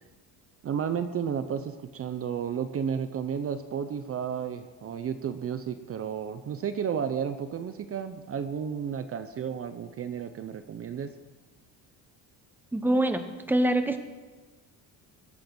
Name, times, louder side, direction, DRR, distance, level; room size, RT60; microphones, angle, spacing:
voice 1, 0.6-11.1, right 7 dB, 40° right, 10 dB, 0.8 m, -32 dB
voice 2, 12.7-13.2 13.5-14.0, right 1 dB, 5° right, 8 dB, 1.1 m, -24 dB
22.0 x 7.7 x 6.1 m, 1.3 s
cardioid pair, 130°, 37 cm